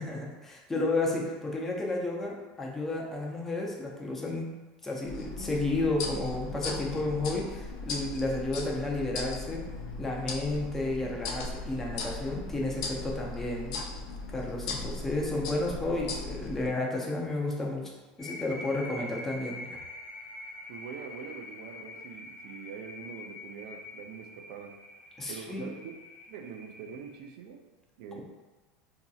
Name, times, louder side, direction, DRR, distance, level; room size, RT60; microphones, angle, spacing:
voice 1, 0.0-4.5 4.8-9.6 10.0-13.8 14.3-19.8 25.2-25.6, left 2 dB, 10° left, -2 dB, 0.5 m, -32 dB
sound 1, 5.0-16.7, left 3 dB, 80° left, 0.5 m, -38 dB
sound 2, 18.2-27.2, left 2 dB, 60° left, 1.1 m, -45 dB
voice 2, 20.7-24.8 25.3-26.0 26.3-27.6 28.0-28.2, right 7 dB, 70° right, 5 dB, 0.4 m, -43 dB
3.8 x 2.7 x 2.3 m, 1.2 s
supercardioid pair, 160°, 4 cm